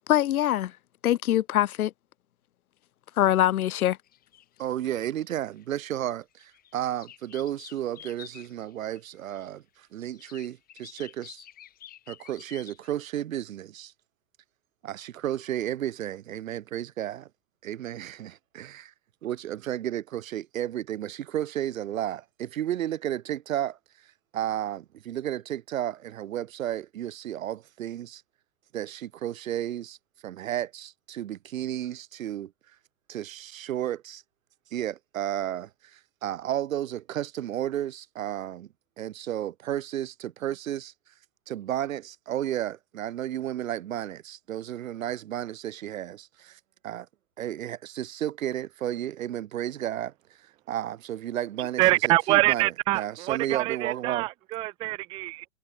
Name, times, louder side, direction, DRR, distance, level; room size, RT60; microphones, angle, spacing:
voice 1, 0.1-0.7 1.0-1.9 3.2-4.0, left 12 dB, 75° left, 0.9 m, -23 dB
sound 1, 4.0-5.6 6.2-9.5 10.1-12.9, left 11 dB, 20° left, 4.8 m, -50 dB
voice 2, 4.6-11.4 12.1-13.9 14.8-17.3 17.6-18.9 19.2-23.8 24.3-28.2 28.7-30.0 30.2-32.5 33.1-34.2 34.7-38.7 39.0-40.9 41.5-47.1 47.4-50.1 50.7-54.3, right 11 dB, 65° right, 6.6 m, -33 dB
voice 3, 51.8-55.4, right 20 dB, 10° right, 0.5 m, -25 dB
hypercardioid pair, 150°, 43 cm